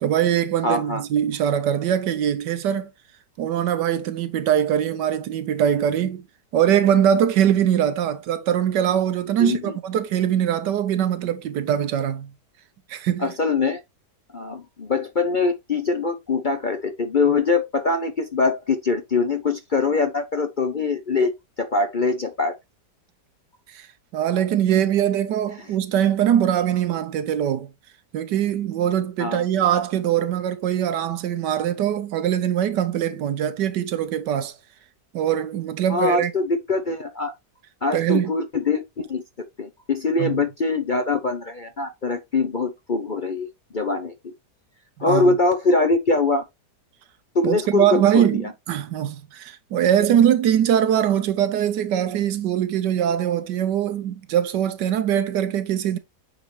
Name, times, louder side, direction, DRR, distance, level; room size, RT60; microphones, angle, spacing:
voice 1, 0.0-2.9 3.4-6.2 6.5-12.3 12.9-13.2 23.7-23.9 24.1-27.7 28.1-34.5 35.1-36.3 37.9-38.3 40.2-40.4 45.1-45.4 47.4-56.0, right 10 dB, 85° right, 1.4 m, -22 dB
voice 2, 0.6-1.0 9.4-9.7 13.2-13.8 14.3-22.6 25.6-25.7 29.2-29.5 35.9-37.3 37.8-43.5 43.7-44.3 45.0-46.5 47.3-48.5, left 3 dB, 45° left, 0.7 m, -23 dB
8.6 x 4.0 x 3.2 m
omnidirectional pair, 1.8 m